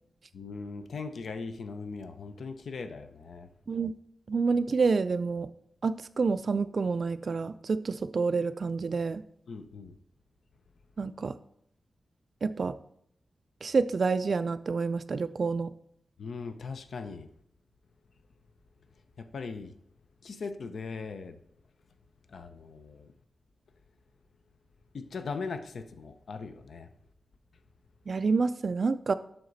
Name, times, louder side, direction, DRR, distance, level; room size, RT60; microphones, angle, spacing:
voice 1, 0.3-3.5 9.5-10.0 16.2-17.3 19.2-19.7 20.2-21.4 22.3-23.1 24.9-26.9, left 4 dB, 75° left, 0.7 m, -39 dB
voice 2, 4.3-5.5 5.8-9.2 11.0-11.3 12.4-12.7 13.6-15.7 28.1-29.1, right 4 dB, 50° right, 0.3 m, -28 dB
7.8 x 5.9 x 4.0 m
wide cardioid pair, 130°, 0 cm